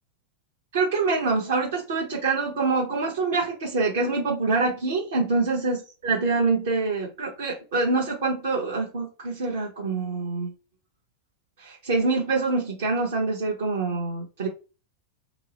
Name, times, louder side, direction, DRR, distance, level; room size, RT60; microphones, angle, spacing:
voice 1, 0.7-5.8 6.0-10.5 11.6-14.5, right 3 dB, 60° right, 0.9 m, -25 dB
2.9 x 2.0 x 4.0 m
figure-of-eight pair, 90°, 0 cm